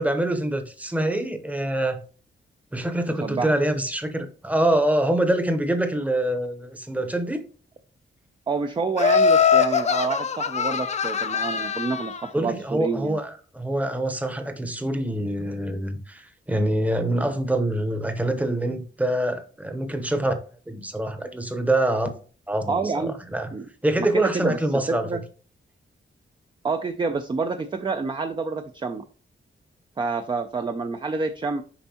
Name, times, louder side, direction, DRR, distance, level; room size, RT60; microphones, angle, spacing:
voice 1, 0.0-2.0 2.7-7.4 12.3-20.3 20.7-22.1 22.5-23.5 23.8-25.2, right 1 dB, 5° right, 0.8 m, -25 dB
voice 2, 8.5-13.2 22.7-23.1 23.5-23.7 24.0-24.6 24.9-25.2 26.6-29.0 30.0-31.6, right 4 dB, 25° right, 0.4 m, -28 dB
Laughter, 9.0-12.2, left 6 dB, 35° left, 0.4 m, -22 dB
6.9 x 5.1 x 2.9 m
wide cardioid pair, 170°, 21 cm